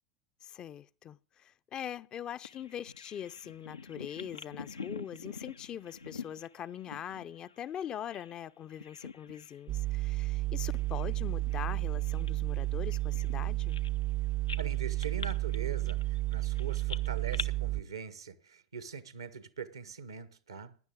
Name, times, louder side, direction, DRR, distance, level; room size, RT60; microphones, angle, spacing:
voice 1, 0.4-13.8, left 10 dB, 35° left, 0.5 m, -42 dB
Bird vocalization bird call bird song, 2.4-8.4 8.7-9.6 9.9-10.1 10.7-14.1 14.5-17.4, left 5 dB, 85° left, 0.6 m, -46 dB
sound 1, 9.7-17.8, right 18 dB, 45° right, 0.5 m, -32 dB
voice 2, 14.6-20.8, right 6 dB, 80° right, 1.1 m, -42 dB
17.0 x 10.5 x 3.6 m
figure-of-eight pair, 80°, 2 cm